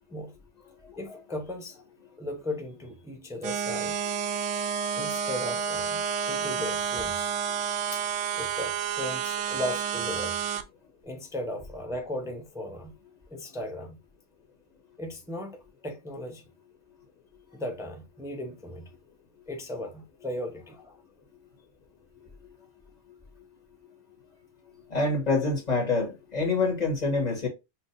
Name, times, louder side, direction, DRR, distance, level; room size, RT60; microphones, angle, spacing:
voice 1, 0.9-1.8 2.2-4.0 4.9-7.3 7.9-8.1 8.3-10.4 11.0-12.9 13.3-14.0 15.0-16.4 17.5-18.9 19.5-21.0, left 1 dB, 5° right, 0.6 m, -37 dB
sound 1, 3.4-10.6, right 7 dB, 90° right, 1.0 m, -30 dB
voice 2, 24.9-27.5, left 3 dB, 35° left, 1.5 m, -26 dB
5.8 x 2.5 x 2.6 m
omnidirectional pair, 1.2 m